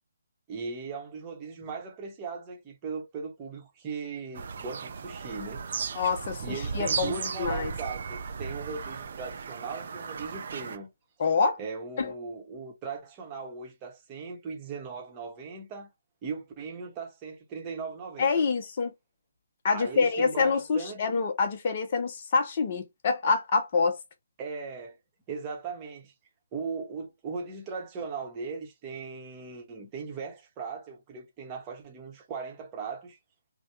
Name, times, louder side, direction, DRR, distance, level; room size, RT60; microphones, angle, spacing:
voice 1, 0.5-5.6 6.4-10.9 11.6-15.9 16.2-18.4 19.7-21.1 24.4-25.0 25.3-26.1 26.5-33.2, right 5 dB, 20° right, 0.9 m, -38 dB
Bird vocalization bird call bird song, 4.3-10.8, right 5 dB, 45° right, 0.5 m, -36 dB
voice 2, 5.9-7.7 11.2-11.6 12.0-12.1 18.2-18.9 19.6-24.0, left 4 dB, 35° left, 0.7 m, -26 dB
3.2 x 2.2 x 2.8 m
figure-of-eight pair, 140°, 0 cm